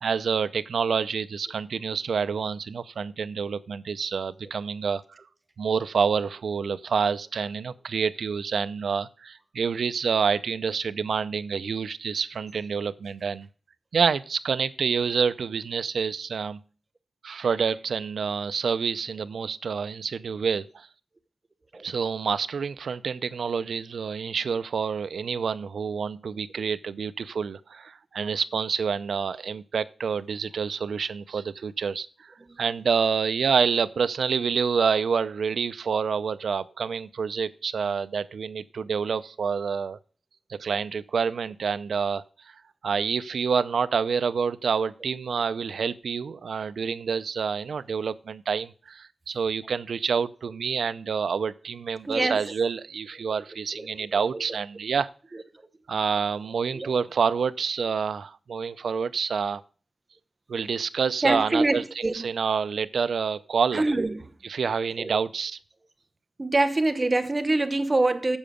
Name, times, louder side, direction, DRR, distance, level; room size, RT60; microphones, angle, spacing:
voice 1, 0.0-5.0 5.6-13.5 13.9-16.6 17.2-20.9 21.8-40.0 40.5-42.2 42.8-55.1 55.9-59.6 60.5-63.8 64.5-65.6, right 6 dB, 90° right, 0.5 m, -27 dB
voice 2, 52.0-52.5 53.7-54.4 55.3-55.4 56.7-56.9 61.2-62.3 63.7-64.3 65.0-65.2 66.4-68.4, right 2 dB, 25° right, 0.8 m, -25 dB
7.8 x 7.2 x 5.0 m
wide cardioid pair, 150°, 0 cm